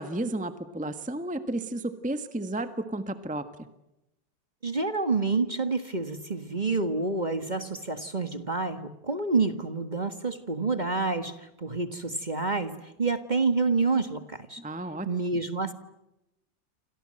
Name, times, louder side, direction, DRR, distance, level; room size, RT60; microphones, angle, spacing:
voice 1, 0.0-3.5 14.6-15.4, right 1 dB, 5° right, 9 dB, 1.4 m, -33 dB
voice 2, 4.6-14.6 15.1-15.7, right 3 dB, 25° right, 9 dB, 1.7 m, -28 dB
29.5 x 26.5 x 7.8 m, 0.90 s
omnidirectional pair, 2.0 m